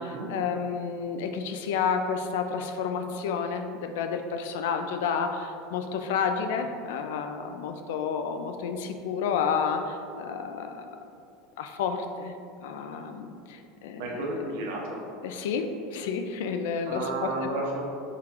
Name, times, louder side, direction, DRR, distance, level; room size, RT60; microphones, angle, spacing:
voice 1, 0.0-11.0 11.6-12.3 12.6-14.2 15.2-17.3, left 6 dB, 75° left, 6 dB, 0.3 m, -30 dB
voice 2, 14.0-15.0 16.9-17.8, right 2 dB, 70° right, -2 dB, 0.8 m, -32 dB
3.7 x 2.4 x 4.3 m, 2.5 s
supercardioid pair, 180°, 0 cm